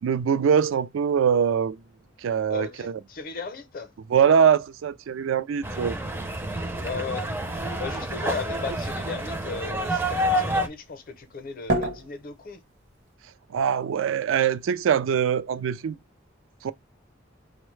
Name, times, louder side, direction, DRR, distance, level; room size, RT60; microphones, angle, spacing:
voice 1, 0.0-1.8 2.2-3.0 4.1-6.0 13.5-15.9 16.6-16.7, right 7 dB, 75° right, 0.3 m, -23 dB
voice 2, 2.5-3.9 6.8-7.4 7.8-12.6, left 5 dB, 45° left, 0.6 m, -36 dB
sound 1, 5.6-10.7, right 1 dB, 10° right, 0.4 m, -28 dB
sound 2, 8.9-13.1, right 1 dB, 60° right, 0.7 m, -35 dB
4.5 x 2.1 x 3.1 m
head